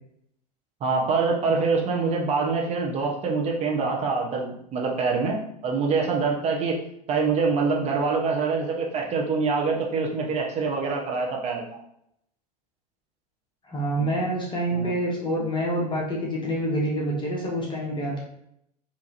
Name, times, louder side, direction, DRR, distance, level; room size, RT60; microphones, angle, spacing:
voice 1, 0.8-6.8 7.1-11.8 14.0-14.1 14.7-14.9, right 4 dB, 30° right, 0 dB, 1.0 m, -25 dB
voice 2, 13.6-18.2, right 1 dB, 20° left, -3 dB, 1.2 m, -27 dB
4.5 x 2.9 x 3.0 m, 0.74 s
figure-of-eight pair, 90°, 21 cm